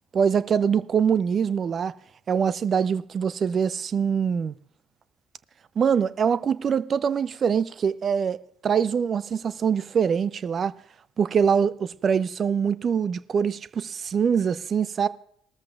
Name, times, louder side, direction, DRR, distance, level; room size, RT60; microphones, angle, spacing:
voice 1, 0.1-1.9 2.3-4.5 5.8-8.4 8.6-10.7 11.2-15.1, right 7 dB, 40° right, 0.5 m, -24 dB
19.0 x 13.5 x 2.4 m
figure-of-eight pair, 55°, 0 cm